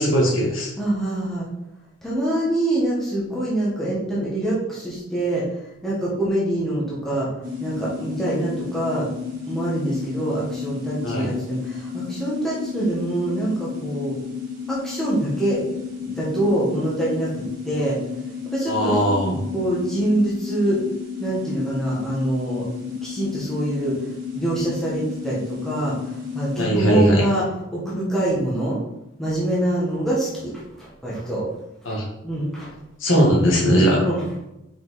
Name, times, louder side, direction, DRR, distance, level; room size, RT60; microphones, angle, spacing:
voice 1, 0.0-0.7 11.0-11.3 18.7-19.4 26.5-27.2 31.8-32.0 33.0-34.0, equal, 75° left, -2 dB, 1.7 m, -19 dB
voice 2, 0.8-1.5 2.0-7.3 7.6-9.1 9.5-14.1 14.7-15.6 16.0-17.3 17.6-18.0 18.4-19.0 19.5-20.8 21.2-22.6 23.0-27.4 27.7-28.8 29.2-31.5 31.9-32.0 32.2-32.7 33.1-33.3 34.0-34.2, right 1 dB, ahead, -7 dB, 1.4 m, -25 dB
sound 1, 7.4-26.6, left 6 dB, 45° right, 1.8 m, -33 dB
5.1 x 5.0 x 4.1 m, 0.89 s
head